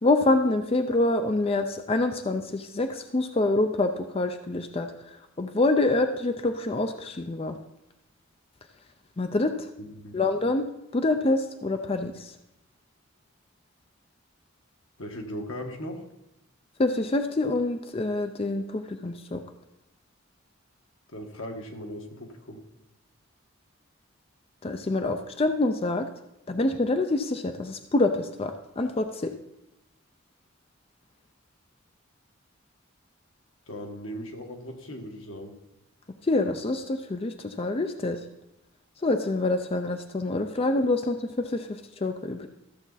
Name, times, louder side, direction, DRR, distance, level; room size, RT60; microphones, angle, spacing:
voice 1, 0.0-7.6 9.2-9.7 10.1-10.7 10.9-12.3 16.8-19.4 24.6-26.1 26.5-29.3 36.2-38.2 39.0-42.5, left 2 dB, 30° left, 7 dB, 0.5 m, -26 dB
voice 2, 9.8-10.2 15.0-16.1 21.1-22.6 33.7-35.6, equal, 85° left, 3 dB, 1.5 m, -38 dB
14.0 x 7.1 x 4.1 m, 0.86 s
head